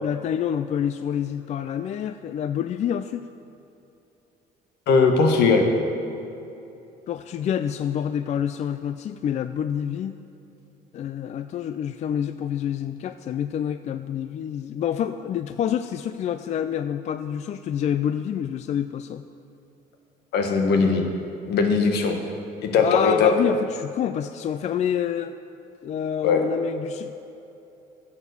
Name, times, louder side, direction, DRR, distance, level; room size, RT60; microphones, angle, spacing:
voice 1, 0.0-3.2 7.1-10.2 10.9-19.2 22.7-25.4 25.8-27.1, left 9 dB, 45° left, 11 dB, 0.4 m, -27 dB
voice 2, 4.9-5.7 20.3-21.1 21.5-22.2 22.6-23.3 26.2-26.4, left 4 dB, 75° left, 4 dB, 1.4 m, -19 dB
11.0 x 7.3 x 6.8 m, 2.9 s
cardioid pair, 110°, 17 cm